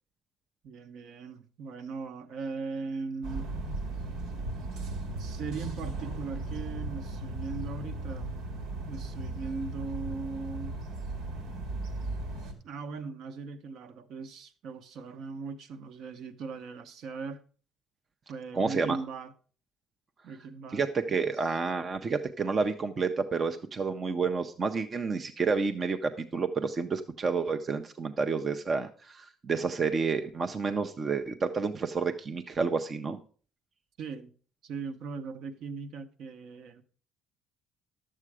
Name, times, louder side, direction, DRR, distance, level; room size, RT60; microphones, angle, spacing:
voice 1, 0.6-3.5 5.2-8.3 8.8-10.8 12.6-17.4 18.3-19.3 20.2-21.3 34.0-34.3 34.6-36.8, right 4 dB, 55° right, 0.9 m, -39 dB
sound 1, 3.2-12.5, right 2 dB, 90° right, 2.0 m, -36 dB
voice 2, 18.5-19.0 20.7-33.2, right 4 dB, 25° right, 0.5 m, -30 dB
11.0 x 7.5 x 4.7 m
cardioid pair, 165°, 0 cm